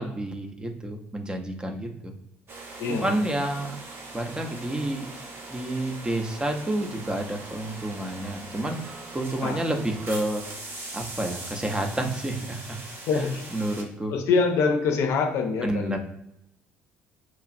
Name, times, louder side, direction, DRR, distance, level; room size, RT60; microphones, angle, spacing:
voice 1, 0.0-2.1 2.9-3.8 4.1-5.1 5.5-10.4 10.9-12.8 13.1-13.2 13.5-14.1 15.6-16.0, right 1 dB, 15° right, 4 dB, 0.6 m, -29 dB
sound 1, 2.5-13.8, right 2 dB, 45° right, 0.9 m, -41 dB
voice 2, 2.8-3.3 9.4-9.6 13.1-13.5 14.1-16.0, left 4 dB, 60° left, 5 dB, 0.5 m, -25 dB
3.0 x 2.3 x 2.6 m, 0.82 s
hypercardioid pair, 55°, 6 cm